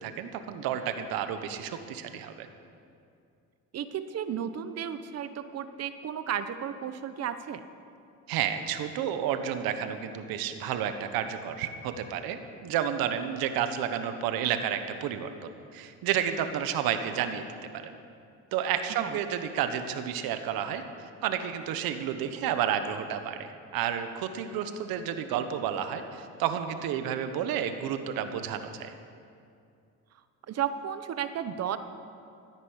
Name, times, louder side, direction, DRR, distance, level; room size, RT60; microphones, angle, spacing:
voice 1, 0.0-2.5 8.3-17.5 17.8-17.9 18.5-28.9, right 9 dB, 85° right, 8 dB, 1.2 m, -31 dB
voice 2, 3.7-7.6 19.0-19.2 30.5-31.8, right 9 dB, 45° right, 11 dB, 0.8 m, -33 dB
14.0 x 10.5 x 8.1 m, 2.5 s
cardioid pair, 130°, 35 cm